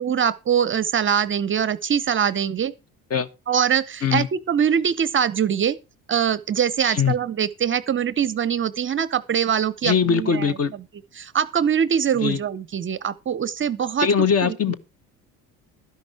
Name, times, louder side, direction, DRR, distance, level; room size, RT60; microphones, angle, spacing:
voice 1, 0.0-2.7 3.5-5.8 6.1-10.5 11.1-14.1 14.4-14.7, right 8 dB, 30° right, 0.7 m, -23 dB
voice 2, 6.8-7.1 9.8-10.7 12.2-12.4 14.0-14.7, left 7 dB, 35° left, 1.3 m, -21 dB
12.5 x 10.5 x 4.4 m
figure-of-eight pair, 60°, 43 cm